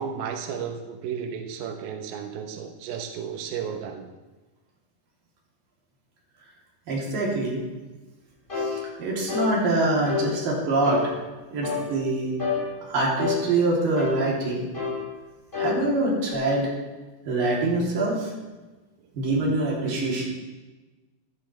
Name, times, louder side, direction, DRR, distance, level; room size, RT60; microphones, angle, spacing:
voice 1, 0.0-4.1, right 7 dB, 90° right, 4 dB, 2.0 m, -33 dB
voice 2, 6.9-7.6 8.5-11.1 11.5-12.3 12.9-14.7 15.5-16.7 17.3-18.3 19.2-20.2, right 2 dB, 50° right, -4 dB, 4.2 m, -25 dB
sound 1, 8.5-8.7 9.3-9.5 10.0-10.3 10.8-11.1 11.6-11.9 12.4-12.6 13.2-13.4 14.0-14.2 14.7-15.0 15.5-15.8 16.3-16.4, left 6 dB, 10° left, 3.0 m, -27 dB
15.5 x 11.5 x 3.3 m, 1.2 s
omnidirectional pair, 5.6 m